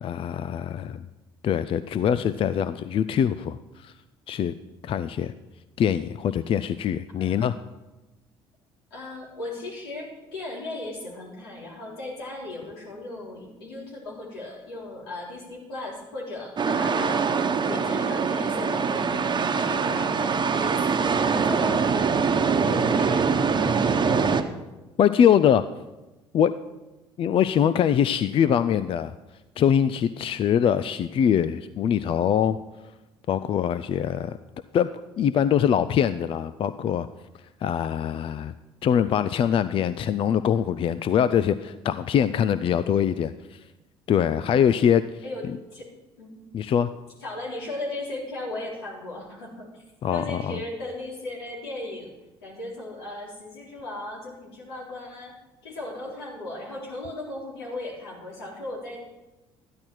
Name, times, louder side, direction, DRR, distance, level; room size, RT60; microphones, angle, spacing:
voice 1, 0.0-1.1 1.4-3.9 4.3-4.5 4.8-5.3 5.8-7.6 25.0-25.6 26.3-26.5 27.2-29.1 29.6-32.6 33.3-34.4 34.7-34.9 35.2-37.1 37.6-38.5 38.8-43.6 44.1-45.0 45.5-45.6 46.5-46.9 50.0-50.6, left 9 dB, 45° left, 14 dB, 0.5 m, -23 dB
voice 2, 7.2-7.6 8.9-17.2 17.6-22.2 22.6-24.0 45.2-45.4 45.7-45.9 46.2-46.4 47.2-49.8 50.1-52.1 52.4-55.3 55.6-59.0, left 2 dB, 85° left, -4 dB, 3.5 m, -37 dB
sound 1, 16.6-24.4, right 5 dB, 35° right, 1.1 m, -23 dB
13.0 x 10.5 x 4.6 m, 1.1 s
hypercardioid pair, 60°, 12 cm